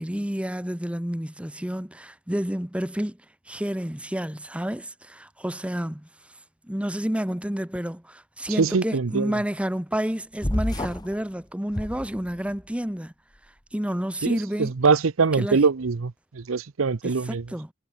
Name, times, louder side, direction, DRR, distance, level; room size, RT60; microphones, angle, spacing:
voice 1, 0.0-3.2 3.5-6.1 6.6-13.1 13.7-14.7 15.4-15.6 17.3-17.7, equal, 5° right, 1.0 m, -30 dB
voice 2, 8.6-9.3 14.2-17.5, right 4 dB, 85° right, 0.7 m, -23 dB
sound 1, 10.4-11.2 11.7-12.6, left 1 dB, 20° left, 1.4 m, -29 dB
head